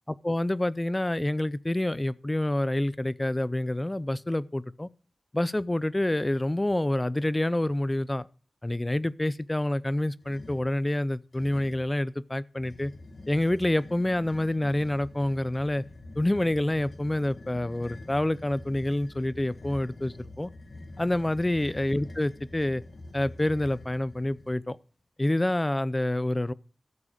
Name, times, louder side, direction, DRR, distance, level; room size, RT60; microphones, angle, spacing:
voice 1, 0.2-4.9 5.3-8.3 8.6-12.9 13.3-15.8 16.2-20.5 21.0-22.8 23.1-24.8 25.2-26.5, left 1 dB, 20° left, 0.6 m, -27 dB
sound 1, 10.2-10.7 11.3-12.0 12.5-24.6, left 2 dB, 60° left, 2.3 m, -46 dB
14.0 x 7.5 x 5.1 m
wide cardioid pair, 85°, 0 cm